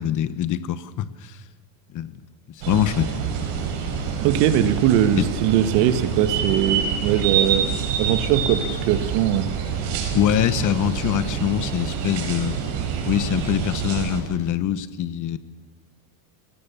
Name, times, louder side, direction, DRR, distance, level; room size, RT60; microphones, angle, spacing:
voice 1, 0.0-1.4 1.9-2.1 2.6-3.1 3.8-4.1 5.2-5.3 10.1-12.6 13.0-15.4, left 11 dB, 40° left, 14 dB, 1.2 m, -24 dB
sound 1, 2.6-14.2, right 7 dB, 90° right, 5.0 m, -26 dB
voice 2, 4.2-9.5, right 10 dB, 75° right, 10 dB, 1.9 m, -21 dB
26.5 x 17.5 x 7.1 m, 1.3 s
supercardioid pair, 130°, 49 cm